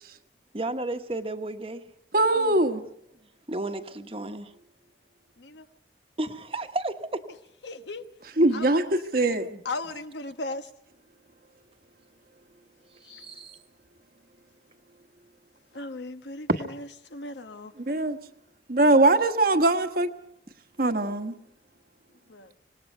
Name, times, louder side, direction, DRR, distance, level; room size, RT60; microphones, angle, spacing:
voice 1, 0.5-1.8 3.5-4.5 6.2-7.3 9.3-9.6 13.0-13.6, right 2 dB, 35° right, 1.2 m, -33 dB
voice 2, 2.1-2.8 8.4-9.5 17.8-18.2 18.7-20.1 20.8-21.3, right 2 dB, 55° right, 1.3 m, -22 dB
voice 3, 7.6-8.0 8.5-9.1 9.6-10.7 13.0-13.4 15.7-17.7 22.3-22.5, left 2 dB, 85° left, 1.2 m, -37 dB
26.0 x 19.5 x 5.5 m
head